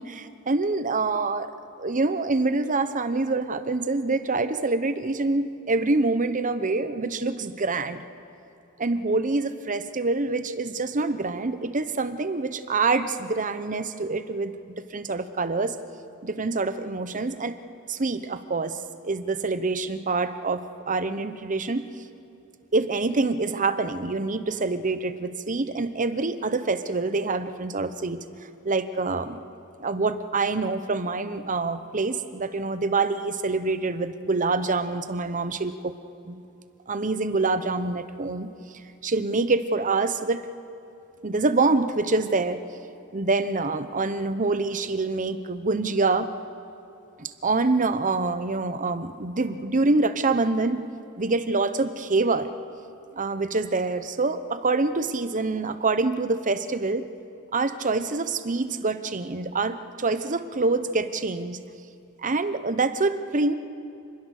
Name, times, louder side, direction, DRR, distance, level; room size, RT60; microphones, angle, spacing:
voice 1, 0.0-1.5 1.8-8.0 8.8-14.5 14.9-15.8 16.2-17.6 17.9-18.8 19.0-21.9 22.7-28.2 28.6-29.4 29.8-35.9 36.3-36.4 36.9-38.5 39.0-40.4 41.2-42.6 43.1-46.3 47.2-50.9 51.2-52.5 53.1-57.1 57.5-61.6 62.2-63.5, right 3 dB, 40° right, 11 dB, 0.9 m, -26 dB
28.0 x 21.0 x 6.6 m, 2.6 s
head